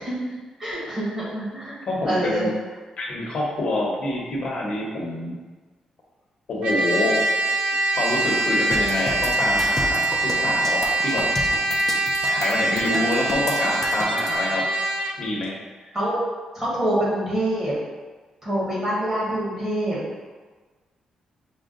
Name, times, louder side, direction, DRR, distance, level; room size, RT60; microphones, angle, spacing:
voice 1, 0.1-1.7 2.0-2.5 12.2-12.3 15.9-16.2 16.5-17.7 18.4-20.0, right 1 dB, 20° right, -7 dB, 1.5 m, -26 dB
voice 2, 1.9-2.5 3.0-5.3 6.5-7.2 7.9-11.3 12.2-14.7 15.2-15.6, left 2 dB, 55° left, -2 dB, 1.0 m, -26 dB
Trumpet, 6.6-15.2, right 2 dB, 60° right, 0.4 m, -23 dB
sound 1, 8.7-14.3, left 2 dB, 15° left, 0.6 m, -32 dB
6.1 x 2.3 x 3.8 m, 1.3 s
wide cardioid pair, 165°, 2 cm